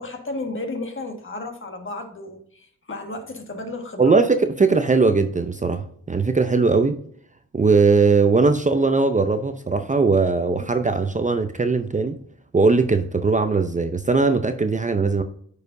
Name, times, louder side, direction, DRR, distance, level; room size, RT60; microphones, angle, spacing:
voice 1, 0.0-4.2, left 2 dB, 40° left, 1.6 m, -33 dB
voice 2, 4.0-7.0 7.5-12.2 12.5-15.2, right 4 dB, 25° right, 0.6 m, -19 dB
9.4 x 4.9 x 2.6 m
cardioid pair, 70°, 31 cm